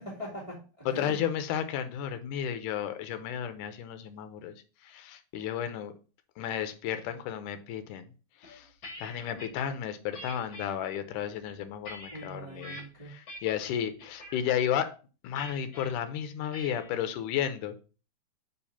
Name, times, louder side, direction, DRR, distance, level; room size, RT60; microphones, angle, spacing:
voice 1, 0.0-1.2 12.1-13.1, equal, 10° right, -6 dB, 1.9 m, -42 dB
voice 2, 0.9-4.5 4.8-5.9 6.4-8.1 8.4-8.7 9.0-12.8 13.1-14.9 15.2-17.8, left 9 dB, 75° left, 9 dB, 2.1 m, -33 dB
sound 1, 8.4-9.6 10.1-10.7 11.3-12.8 13.3-13.7 14.0-14.4 15.4-15.9 16.5-16.9, left 1 dB, 40° left, 2.3 m, -45 dB
5.2 x 4.5 x 5.5 m, 0.35 s
omnidirectional pair, 4.1 m